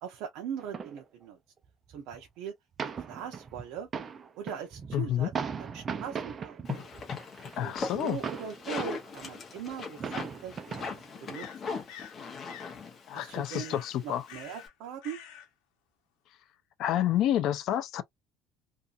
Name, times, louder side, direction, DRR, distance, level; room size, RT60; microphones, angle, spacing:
voice 1, 0.0-1.4 1.9-2.5 2.8-3.9 4.4-5.3 5.6-6.6 7.4-11.7 13.1-15.2, right 8 dB, 65° right, 0.6 m, -41 dB
sound 1, 0.6-1.0 1.6-1.7 1.9-2.3 2.8-9.1 9.5-9.6 9.8-11.1 11.7-11.8, right 6 dB, 25° right, 0.3 m, -38 dB
voice 2, 4.9-5.3 7.6-8.2 13.1-14.3 16.8-18.0, left 12 dB, 45° left, 0.4 m, -29 dB
sound 2, 6.6-14.7, left 4 dB, 25° left, 0.8 m, -40 dB
sound 3, 11.3-12.2 12.5-12.8 13.5-13.9 14.3-14.7 15.0-15.5, left 9 dB, 80° left, 0.8 m, -47 dB
2.7 x 2.4 x 2.4 m
cardioid pair, 175°, 0 cm